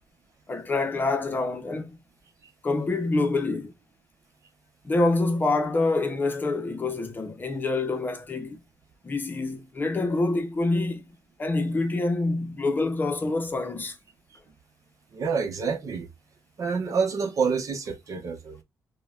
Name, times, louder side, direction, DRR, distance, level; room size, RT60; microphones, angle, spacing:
voice 1, 0.5-2.0 2.6-3.7 4.8-8.6 9.0-11.0 11.4-14.0, left 2 dB, 30° left, 0.7 m, -26 dB
voice 2, 15.1-16.1 16.6-18.6, right 5 dB, 55° right, 0.8 m, -27 dB
5.1 x 2.2 x 2.3 m
cardioid pair, 125°, 7 cm